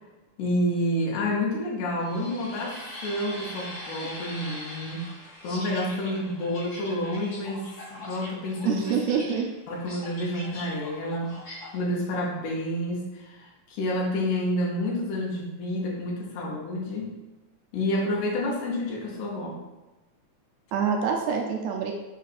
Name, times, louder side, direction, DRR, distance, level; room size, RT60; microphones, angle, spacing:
voice 1, 0.4-5.1 5.4-9.0 9.7-11.3 11.7-17.1 17.7-19.6, left 1 dB, 90° left, -3 dB, 2.3 m, -29 dB
sound 1, 2.0-11.8, left 1 dB, 60° left, 1.0 m, -41 dB
voice 2, 8.6-9.5 20.7-21.9, right 6 dB, 80° right, 2 dB, 1.6 m, -26 dB
5.7 x 3.8 x 2.5 m, 1.1 s
omnidirectional pair, 3.4 m